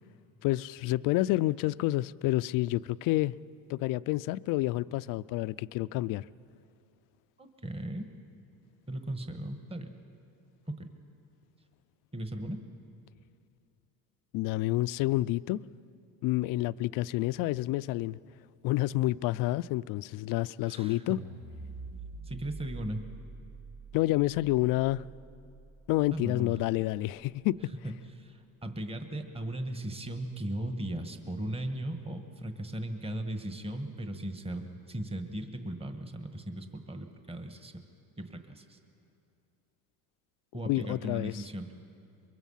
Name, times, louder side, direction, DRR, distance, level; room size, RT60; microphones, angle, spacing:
voice 1, 0.4-3.4 3.7-6.3 14.3-15.6 16.2-18.2 18.6-21.2 23.9-25.1 25.9-27.7 40.6-41.5, left 17 dB, 55° left, 0.5 m, -29 dB
voice 2, 7.4-8.1 8.9-9.9 10.7-10.9 12.1-12.6 20.7-21.0 22.2-23.0 26.1-26.5 27.8-37.7 38.2-38.8 40.5-41.7, right 1 dB, 15° right, 1.5 m, -37 dB
sound 1, 21.1-27.4, right 3 dB, 45° right, 1.8 m, -47 dB
23.5 x 22.5 x 5.7 m
supercardioid pair, 110°, 40 cm